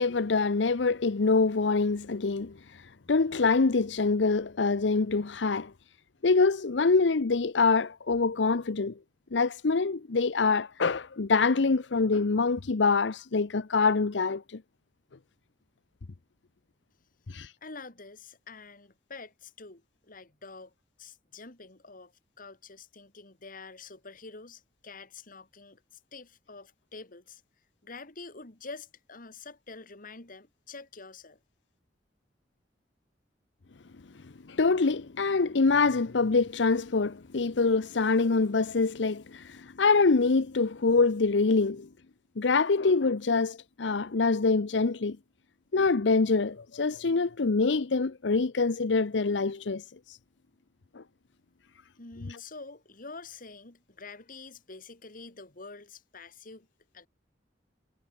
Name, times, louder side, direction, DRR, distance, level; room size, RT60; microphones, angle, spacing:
voice 1, 0.0-2.6 3.1-5.7 6.2-8.9 9.3-14.6 17.3-17.5 34.5-41.9 42.4-45.2 45.7-50.2 50.9-51.0 52.3-52.4, left 4 dB, 85° left, 0.7 m, -25 dB
voice 2, 17.6-20.7 21.0-22.1 22.4-27.4 27.8-31.4 52.0-56.7 56.9-57.1, left 3 dB, 50° left, 2.6 m, -47 dB
head